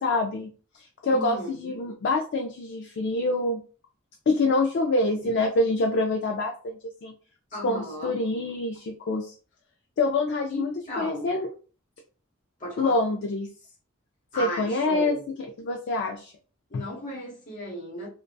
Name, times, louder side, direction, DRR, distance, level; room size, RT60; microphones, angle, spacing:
voice 1, 0.0-3.6 4.3-7.1 7.6-9.3 10.0-11.5 12.8-13.5 14.4-15.2 15.6-16.3 16.7-16.8, left 2 dB, 55° left, 0.3 m, -26 dB
voice 2, 1.1-1.8 5.2-5.3 7.5-8.2 10.5-11.3 12.6-13.0 14.3-15.3 16.7-18.1, equal, 40° left, 1.0 m, -35 dB
2.6 x 2.2 x 2.2 m
head